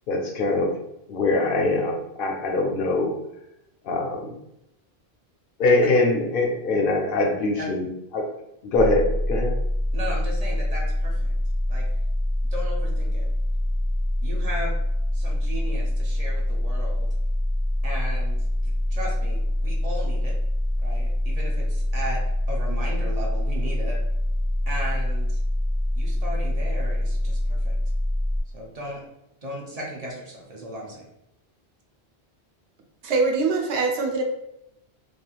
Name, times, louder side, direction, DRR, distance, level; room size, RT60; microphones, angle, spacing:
voice 1, 0.1-0.7 1.1-3.1 3.8-4.3 5.6-7.9 8.1-8.3 8.6-9.5, left 2 dB, 65° left, 2 dB, 0.7 m, -23 dB
sound 1, 8.7-28.4, left 1 dB, 15° right, 0.8 m, -25 dB
voice 2, 9.9-11.3 11.7-11.8 12.5-13.3 14.2-14.7 15.1-17.1 17.8-20.4 20.8-22.2 22.5-24.0 24.7-25.4 26.0-27.8 28.5-29.0 29.4-31.0, right 1 dB, 45° right, -2 dB, 0.5 m, -36 dB
voice 3, 33.0-34.2, right 4 dB, 90° right, 3 dB, 0.9 m, -23 dB
3.0 x 2.3 x 2.3 m, 0.83 s
omnidirectional pair, 1.1 m